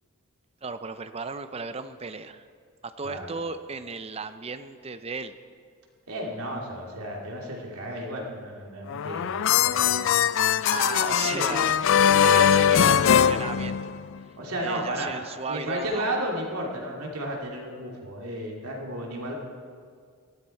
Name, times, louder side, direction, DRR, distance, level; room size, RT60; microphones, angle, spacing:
voice 1, 0.6-2.5 2.8-5.4 10.7-11.8 12.1-13.9 14.6-16.1, right 4 dB, 25° right, 11 dB, 0.5 m, -35 dB
voice 2, 6.1-10.1 11.1-11.6 14.4-15.1 15.5-19.3, right 1 dB, 85° right, -1 dB, 2.7 m, -33 dB
sound 1, 8.9-14.2, left 8 dB, 60° left, 0.4 m, -21 dB
18.5 x 13.5 x 4.5 m, 2.1 s
head